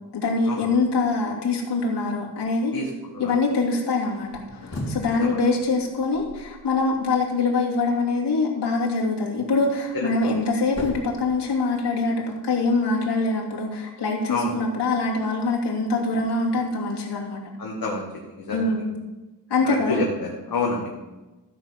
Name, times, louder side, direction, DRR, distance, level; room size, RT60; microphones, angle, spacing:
voice 1, 0.1-2.7 3.2-12.1 12.4-17.4 18.5-18.9 19.5-20.0, left 3 dB, 85° left, -2 dB, 2.8 m, -24 dB
sound 1, 4.1-7.3 9.5-12.0, left 1 dB, 40° left, 3.7 m, -39 dB
voice 2, 10.0-10.3 14.3-14.5 17.6-18.0 18.3-18.8 19.6-20.9, left 3 dB, 60° left, -1 dB, 1.8 m, -28 dB
13.5 x 6.1 x 7.3 m, 1.1 s
wide cardioid pair, 100°, 40 cm